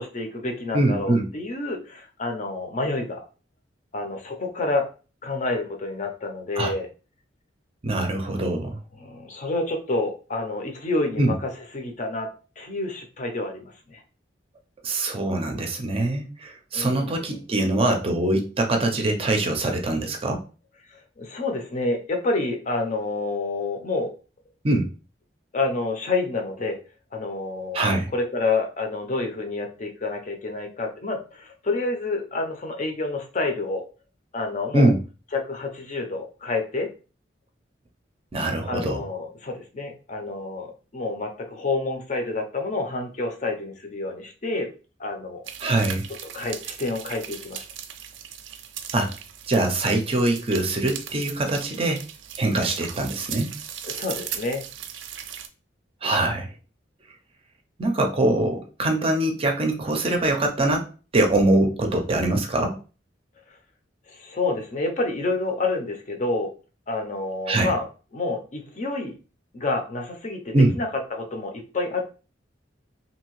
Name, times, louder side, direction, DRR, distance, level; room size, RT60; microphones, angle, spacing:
voice 1, 0.0-3.3 3.9-4.9 5.2-6.9 8.9-14.0 16.7-17.4 20.9-24.1 25.5-26.8 27.1-33.8 34.3-34.9 35.3-36.9 38.7-44.7 45.0-45.4 46.3-47.7 52.5-52.7 53.8-54.6 64.1-66.5 66.9-67.9 68.1-69.1 69.5-72.0, left 3 dB, 40° left, 3 dB, 0.6 m, -28 dB
voice 2, 0.7-1.3 6.6-6.7 7.8-8.8 11.2-11.3 14.8-20.4 24.6-24.9 27.7-28.1 34.7-35.0 38.3-39.1 45.6-46.1 48.9-49.1 49.5-52.0 52.4-53.5 56.0-56.5 57.8-62.8 67.5-67.7 70.5-70.7, right 2 dB, 30° right, 3 dB, 0.5 m, -23 dB
sound 1, 45.5-55.5, right 9 dB, 90° right, 0.4 m, -38 dB
2.7 x 2.7 x 3.0 m, 0.35 s
head